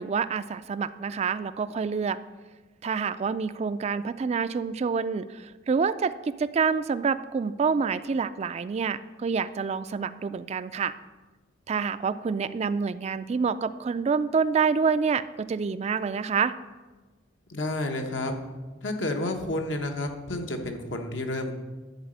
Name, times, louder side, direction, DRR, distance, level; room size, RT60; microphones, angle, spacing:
voice 1, 0.0-2.2 2.8-10.9 11.7-16.5, right 5 dB, 35° right, 13 dB, 0.3 m, -27 dB
voice 2, 17.5-18.3 18.8-21.5, left 1 dB, 75° left, 4 dB, 1.2 m, -30 dB
11.0 x 4.1 x 7.8 m, 1.3 s
head